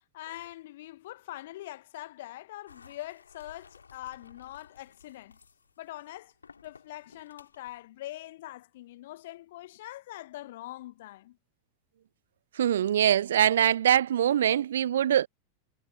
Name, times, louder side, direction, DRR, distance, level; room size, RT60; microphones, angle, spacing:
voice 1, 0.1-5.4 5.8-6.3 6.6-11.4, left 15 dB, 55° left, 1.4 m, -43 dB
sound 1, 2.7-7.8, left 5 dB, 75° left, 4.3 m, -56 dB
voice 2, 12.6-15.3, right 10 dB, 60° right, 0.5 m, -23 dB
figure-of-eight pair, 90°, 0 cm